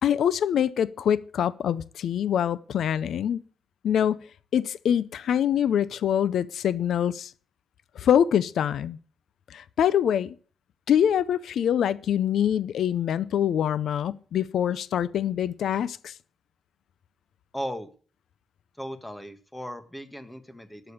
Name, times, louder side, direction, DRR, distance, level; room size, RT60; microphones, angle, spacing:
voice 1, 0.0-3.4 3.8-4.2 4.5-7.3 8.0-9.0 9.5-10.3 10.9-16.1, left 9 dB, 80° left, 0.5 m, -24 dB
voice 2, 17.5-17.9 18.8-20.9, equal, 5° left, 1.6 m, -37 dB
12.0 x 6.9 x 8.5 m
cardioid pair, 105°, 0 cm